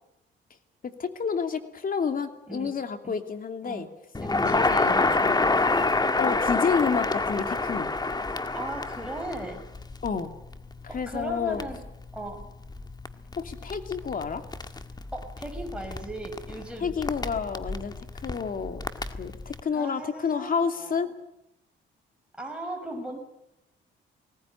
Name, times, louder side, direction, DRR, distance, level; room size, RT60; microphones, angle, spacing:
voice 1, 0.8-3.9 4.4-5.5 6.2-7.9 10.0-10.3 10.9-11.7 13.4-14.4 16.8-18.8 19.2-21.1, left 6 dB, 45° left, 7 dB, 2.8 m, -30 dB
Crackle, 4.1-19.6, left 3 dB, 20° left, 1.7 m, -29 dB
voice 2, 4.2-5.6 8.5-9.6 10.9-11.8 12.1-12.4 15.1-16.9 19.7-21.1 22.4-23.2, right 1 dB, 5° right, 1 dB, 6.0 m, -37 dB
20.5 x 18.5 x 9.8 m, 0.86 s
cardioid pair, 90°, 20 cm